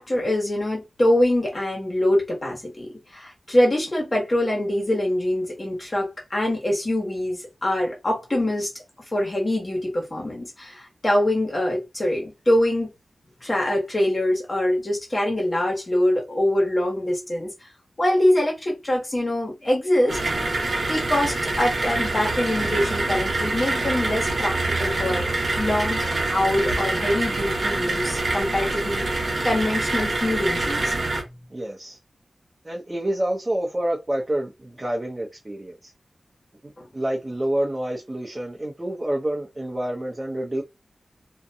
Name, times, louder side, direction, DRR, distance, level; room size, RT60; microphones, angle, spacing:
voice 1, 0.0-8.7 9.1-12.9 13.4-17.5 18.0-20.2 20.8-25.3 25.5-30.9 36.8-36.9, left 1 dB, 40° left, 1.2 m, -24 dB
sound 1, 20.1-31.2, right 2 dB, 65° right, 1.0 m, -25 dB
voice 2, 31.5-32.0 32.6-35.9 36.9-40.6, right 1 dB, 30° right, 0.7 m, -28 dB
2.5 x 2.2 x 2.7 m
wide cardioid pair, 60°, 0 cm